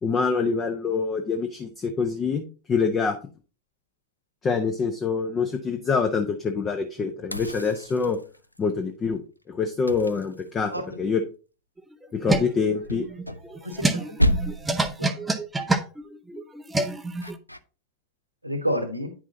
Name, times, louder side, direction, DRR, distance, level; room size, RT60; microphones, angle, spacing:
voice 1, 0.0-3.2 4.4-8.2 8.6-9.2 9.5-10.7 11.0-11.2 12.2-13.1, left 5 dB, 25° left, 0.9 m, -25 dB
sound 1, 7.3-8.6 9.9-11.0 12.8-13.9 14.2-14.9 17.2-17.6, equal, 90° left, 0.4 m, -29 dB
sound 2, 11.8-17.4, right 2 dB, 10° right, 0.7 m, -27 dB
voice 2, 13.6-14.3 15.0-15.4 18.4-19.1, equal, 85° right, 1.3 m, -31 dB
9.4 x 6.0 x 2.7 m
figure-of-eight pair, 90°, 0 cm